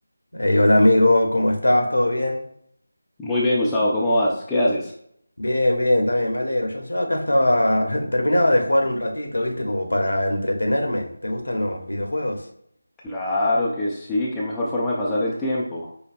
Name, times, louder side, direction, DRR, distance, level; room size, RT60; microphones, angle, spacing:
voice 1, 0.3-2.4 5.4-12.4, left 1 dB, 65° left, 3 dB, 0.8 m, -21 dB
voice 2, 3.2-4.9 13.0-15.9, left 1 dB, 5° left, -7 dB, 0.4 m, -23 dB
5.1 x 2.1 x 2.5 m, 0.68 s
figure-of-eight pair, 165°, 0 cm